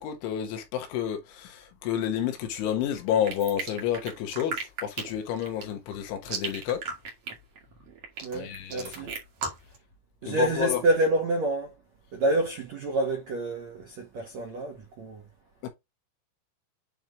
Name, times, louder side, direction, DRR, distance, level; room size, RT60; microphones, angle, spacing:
voice 1, 0.0-6.8 8.3-8.9 10.3-10.8 15.6-15.7, left 10 dB, 75° left, 3.6 m, -30 dB
sound 1, 3.2-9.8, right 4 dB, 50° right, 2.2 m, -35 dB
voice 2, 8.2-9.1 10.2-11.7 12.1-15.2, right 1 dB, 85° right, 1.5 m, -28 dB
9.1 x 3.3 x 3.9 m
omnidirectional pair, 5.8 m